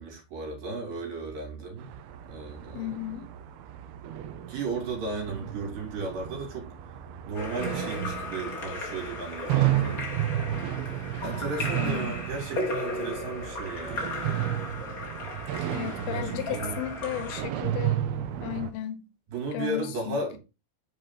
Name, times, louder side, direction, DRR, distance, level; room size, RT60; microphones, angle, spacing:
voice 1, 0.0-1.9 2.3-2.9 4.5-6.7 7.3-10.0 11.2-14.1 15.9-16.8 19.3-20.4, right 3 dB, 65° right, 4.4 m, -35 dB
sound 1, 1.8-18.7, right 12 dB, 85° right, 2.7 m, -33 dB
voice 2, 2.7-3.3 11.7-12.2 15.7-18.0 18.4-19.0 19.5-20.2, left 12 dB, 80° left, 2.6 m, -34 dB
Splash splatter / Drip / Trickle dribble, 7.3-17.4, left 2 dB, 60° left, 0.9 m, -36 dB
8.0 x 7.2 x 2.8 m
omnidirectional pair, 4.5 m